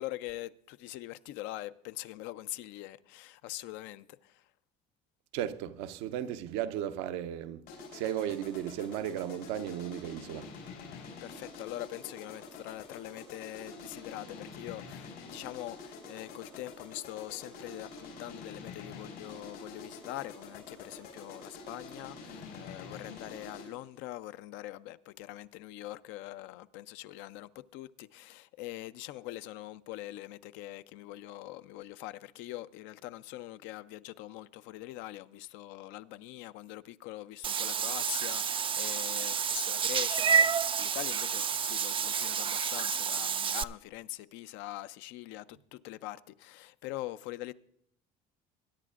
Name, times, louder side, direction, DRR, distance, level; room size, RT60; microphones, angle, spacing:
voice 1, 0.0-4.4 11.2-47.5, left 15 dB, 70° left, 0.5 m, -43 dB
voice 2, 5.3-7.7 7.9-10.5, right 10 dB, 75° right, 0.7 m, -35 dB
sound 1, 7.7-23.8, left 4 dB, 90° left, 3.8 m, -47 dB
Meow / Water / Bathtub (filling or washing), 37.4-43.6, right 7 dB, 25° right, 0.4 m, -29 dB
21.5 x 10.0 x 2.4 m
hypercardioid pair, 70°, 20 cm